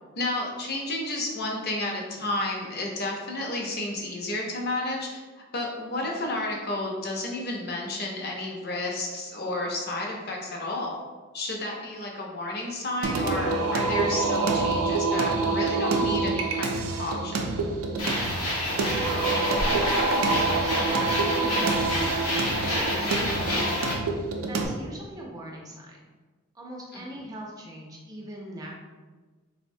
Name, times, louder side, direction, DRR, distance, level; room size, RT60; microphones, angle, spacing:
voice 1, 0.2-5.2 5.5-11.0 11.3-17.4 26.9-27.0, left 2 dB, 45° left, -1 dB, 0.5 m, -31 dB
Singing, 13.0-24.7, right 3 dB, 80° right, 0.4 m, -27 dB
sound 1, 18.0-23.9, left 1 dB, 85° left, 0.8 m, -28 dB
voice 2, 18.8-23.9 24.5-26.0 26.5-28.7, right 1 dB, 15° right, -2 dB, 0.4 m, -41 dB
3.8 x 2.1 x 2.6 m, 1.3 s
head